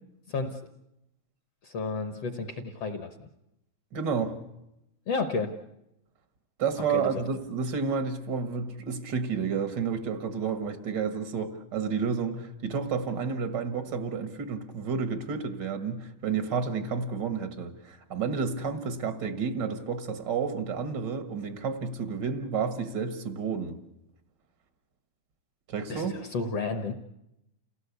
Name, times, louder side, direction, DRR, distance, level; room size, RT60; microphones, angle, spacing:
voice 1, 0.3-0.6 1.6-3.1 5.1-5.5 6.9-7.0 25.9-26.9, left 4 dB, 60° left, 7 dB, 1.7 m, -31 dB
voice 2, 3.9-4.4 6.6-23.8 25.7-26.1, right 5 dB, 70° right, 10 dB, 1.0 m, -30 dB
28.5 x 18.0 x 8.3 m, 0.86 s
omnidirectional pair, 4.3 m